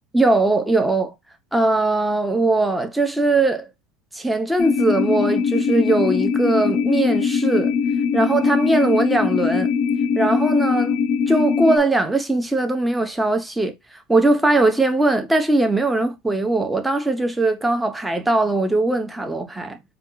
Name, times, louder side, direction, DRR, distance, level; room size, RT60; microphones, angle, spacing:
voice 1, 0.1-1.1 1.5-3.7 4.1-7.7 8.1-9.7 10.1-11.0 11.3-13.7 14.1-19.8, right 2 dB, 5° right, 0.7 m, -20 dB
sound 1, 4.6-11.8, left 6 dB, 45° left, 0.5 m, -21 dB
4.3 x 2.3 x 3.8 m
supercardioid pair, 125°, 0 cm